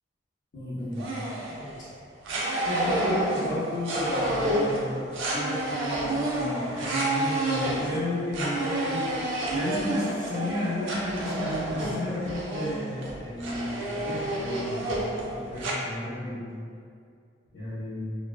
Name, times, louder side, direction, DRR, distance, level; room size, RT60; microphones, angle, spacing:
voice 1, 0.5-1.1 1.8-1.9 2.6-9.1 9.5-14.8 15.2-16.4 17.5-18.0, left 1 dB, 65° left, -13 dB, 0.6 m, -33 dB
sound 1, 1.0-1.9 2.3-15.8, right 1 dB, 90° right, 0.4 m, -29 dB
2.5 x 2.2 x 2.3 m, 2.3 s
head